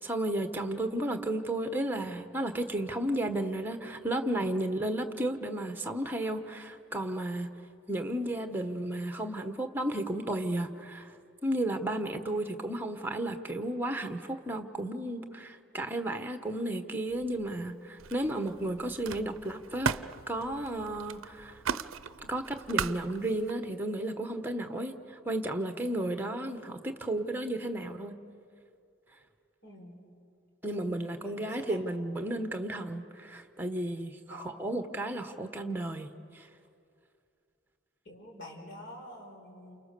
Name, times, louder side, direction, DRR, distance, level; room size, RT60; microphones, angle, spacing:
voice 1, 0.0-7.5 7.9-11.1 11.4-20.0 20.3-21.6 22.3-28.2 30.6-36.1 36.3-36.5, right 1 dB, 10° right, 7 dB, 1.2 m, -33 dB
voice 2, 12.4-12.7 29.6-30.0 31.2-31.8 34.3-34.6 38.1-39.8, left 1 dB, 55° left, 0 dB, 5.5 m, -48 dB
Camera, 17.1-17.7 18.0-23.5, right 6 dB, 75° right, 0.6 m, -38 dB
29.5 x 28.5 x 6.8 m, 2.5 s
head